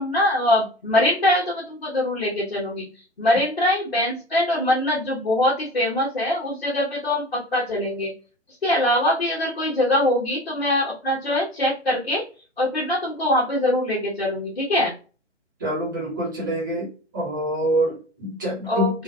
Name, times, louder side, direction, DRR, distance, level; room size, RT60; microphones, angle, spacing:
voice 1, 0.0-2.9 3.2-8.1 8.6-12.2 12.6-14.9 18.7-19.0, left 1 dB, 50° left, -5 dB, 1.0 m, -23 dB
voice 2, 15.6-16.9 17.1-19.0, right 1 dB, 15° right, -5 dB, 1.0 m, -25 dB
3.2 x 2.2 x 2.3 m, 0.35 s
figure-of-eight pair, 150°, 35 cm